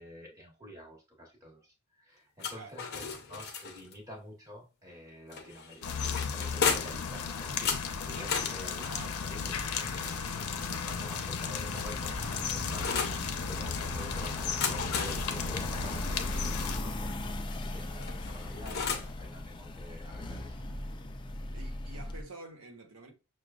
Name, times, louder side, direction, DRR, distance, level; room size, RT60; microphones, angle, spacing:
voice 1, 0.0-6.0 6.3-10.4 10.7-20.6, equal, 15° right, 1.2 m, -48 dB
sound 1, 2.4-4.0 5.3-7.1 7.7-10.6 11.4-13.2 14.4-16.9 18.0-19.2, left 6 dB, 50° left, 0.7 m, -36 dB
voice 2, 2.5-2.8 6.3-7.1 21.5-23.1, right 2 dB, 85° right, 1.0 m, -49 dB
sound 2, 5.8-16.8, left 6 dB, 85° left, 0.6 m, -35 dB
sound 3, 11.8-22.2, left 1 dB, 20° left, 0.3 m, -38 dB
6.2 x 2.3 x 2.3 m
head